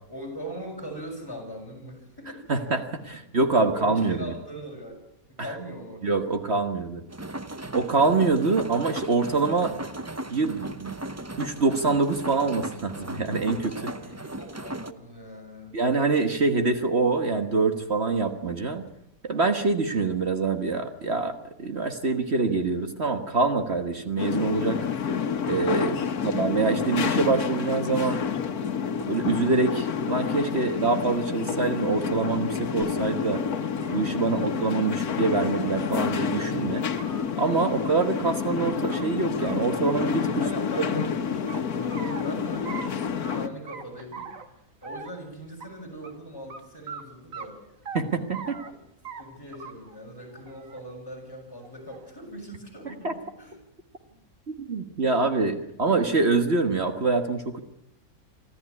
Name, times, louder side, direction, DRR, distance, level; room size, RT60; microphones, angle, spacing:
voice 1, 0.1-2.7 3.7-5.0 5.3-6.1 13.7-15.8 26.0-26.3 34.2-34.5 40.4-44.3 44.8-47.6 49.2-53.6, equal, 15° left, 1 dB, 6.9 m, -40 dB
voice 2, 2.5-4.3 6.0-7.0 7.7-9.7 10.3-10.9 11.4-13.7 15.7-18.8 19.2-24.8 25.5-26.0 26.2-28.2 29.1-33.4 33.9-36.9 37.4-40.4 47.9-48.6 53.0-53.1 54.5-57.6, right 4 dB, 45° right, 7 dB, 1.7 m, -25 dB
sound 1, 7.1-14.9, right 1 dB, 15° right, 0.5 m, -37 dB
sound 2, 24.2-43.5, left 7 dB, 80° left, 1.7 m, -29 dB
sound 3, 33.6-34.2 35.2-35.3 35.7-35.8 36.2-36.3 36.8-37.2 38.4-39.0 39.4-39.5 39.8-41.1 41.5-42.2 42.6-42.9 43.2-43.4 43.7-44.5 44.8-45.2 45.6-45.7 46.0-46.1 46.5-46.6 46.9-47.0 47.3-48.0 48.3-48.7 49.0-49.2 49.5-49.9 50.3-50.8 51.6-52.1, right 5 dB, 65° right, 2.1 m, -41 dB
25.5 x 14.5 x 9.7 m, 0.82 s
omnidirectional pair, 1.5 m